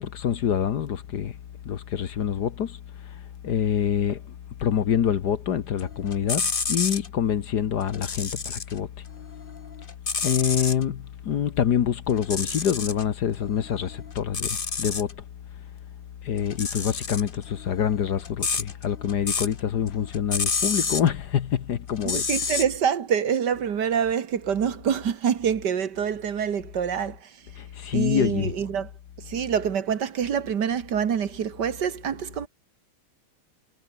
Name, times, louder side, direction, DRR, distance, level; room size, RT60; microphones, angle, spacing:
voice 1, 0.0-1.3 1.6-2.8 3.4-4.2 4.6-6.4 6.7-8.9 10.2-15.1 16.2-22.3 27.6-28.5, left 9 dB, 55° left, 1.5 m, -26 dB
sound 1, 5.8-7.1 7.8-8.8 9.2-10.8 12.1-13.0 13.4-15.1 16.4-19.6 19.9-21.1 21.9-22.6, left 4 dB, 30° left, 1.4 m, -29 dB
voice 2, 22.1-27.4 27.9-28.9 29.2-32.5, right 8 dB, 55° right, 1.9 m, -26 dB
omnidirectional pair, 2.4 m